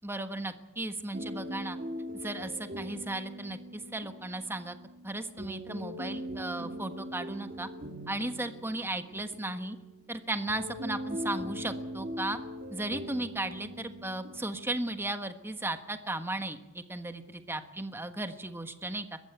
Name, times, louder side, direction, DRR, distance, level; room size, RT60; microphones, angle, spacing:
voice 1, 0.0-1.8 2.2-4.7 5.0-7.7 8.1-9.8 10.1-12.4 12.7-19.2, right 2 dB, 10° right, 8 dB, 1.3 m, -35 dB
sound 1, 1.1-14.9, equal, 40° right, 1.9 m, -41 dB
21.5 x 15.0 x 8.1 m, 1.0 s
head